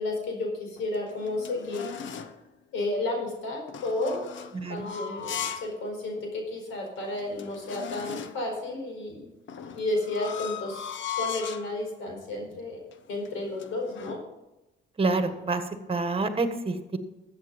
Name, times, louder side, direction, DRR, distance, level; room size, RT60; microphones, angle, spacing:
voice 1, 0.0-1.9 2.7-4.3 4.5-9.3 9.7-10.9 11.2-14.2, left 2 dB, 85° left, 2 dB, 4.6 m, -32 dB
sound 1, 0.8-2.4 3.7-5.8 6.2-6.3 6.9-7.0 7.1-8.5 9.5-11.7 12.4-12.6 12.9-14.2, left 8 dB, 70° left, 1.0 m, -38 dB
voice 2, 4.5-4.9 15.0-17.0, right 3 dB, 30° right, 8 dB, 1.5 m, -28 dB
13.0 x 8.2 x 5.2 m, 0.96 s
cardioid pair, 90°, 20 cm